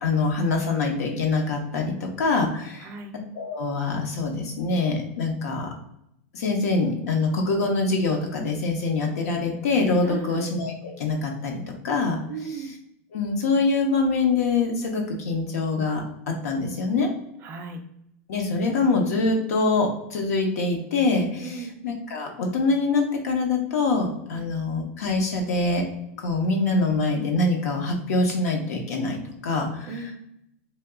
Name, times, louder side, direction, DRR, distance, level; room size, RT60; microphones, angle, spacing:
voice 1, 0.0-2.9 3.4-5.7 6.3-12.2 13.1-17.1 18.3-21.6 21.8-25.8 26.2-29.9, left 3 dB, 85° left, 2 dB, 0.8 m, -24 dB
voice 2, 2.8-3.1 10.0-10.5 12.3-12.7 17.4-17.8 21.4-21.8 24.3-24.5 29.8-30.2, right 4 dB, 25° right, 5 dB, 0.4 m, -36 dB
2.8 x 2.2 x 3.4 m, 0.79 s
supercardioid pair, 160°, 8 cm